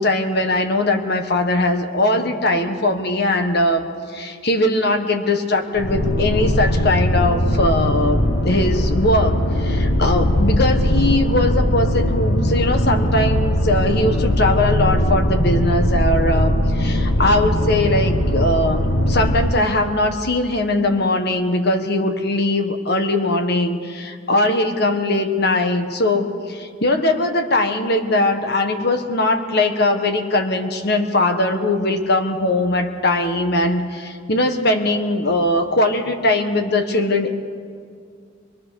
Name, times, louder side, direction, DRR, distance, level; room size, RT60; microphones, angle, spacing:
voice 1, 0.0-37.4, left 2 dB, 60° left, 6 dB, 1.6 m, -20 dB
sound 1, 5.8-19.5, equal, 85° left, 1.5 m, -19 dB
23.0 x 22.5 x 6.6 m, 2.2 s
head